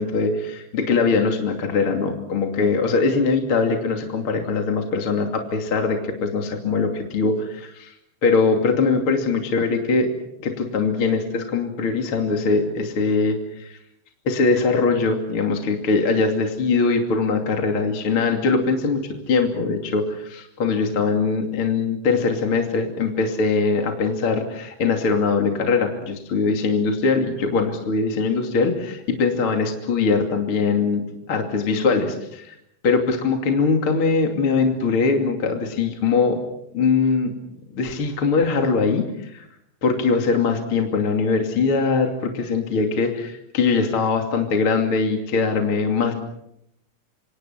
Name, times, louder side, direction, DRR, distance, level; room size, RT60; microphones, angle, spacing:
voice 1, 0.0-7.9 8.2-10.1 10.4-13.8 14.2-31.0 31.3-32.5 32.8-36.4 36.7-37.3 37.7-39.5 39.8-46.1, left 4 dB, 35° left, 3 dB, 2.7 m, -21 dB
27.5 x 26.0 x 5.9 m, 0.79 s
omnidirectional pair, 5.6 m